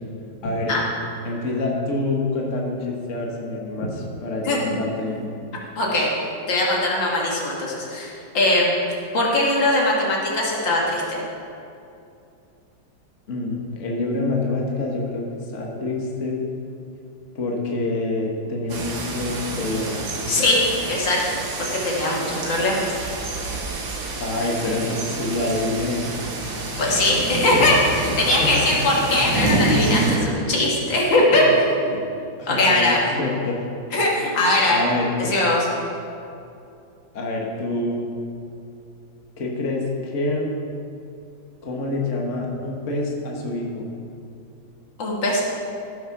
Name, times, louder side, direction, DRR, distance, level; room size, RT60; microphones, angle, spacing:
voice 1, 0.4-0.7 1.2-5.3 13.3-16.4 17.3-20.1 24.2-26.2 27.5-27.6 28.2-28.7 31.3-31.4 31.9-32.0 32.4-33.6 34.7-35.3 37.1-38.1 39.4-40.5 41.6-43.9, left 2 dB, 45° left, -1 dB, 1.6 m, -26 dB
voice 2, 5.8-6.1 6.5-8.7 9.1-11.2 20.3-22.8 26.8-32.0 32.5-33.0 33.9-34.8 35.2-35.7 45.0-45.4, left 1 dB, 85° left, -3 dB, 2.7 m, -20 dB
sound 1, 18.7-30.2, right 3 dB, 85° right, 2.2 m, -27 dB
14.5 x 6.4 x 5.9 m, 2.6 s
omnidirectional pair, 2.0 m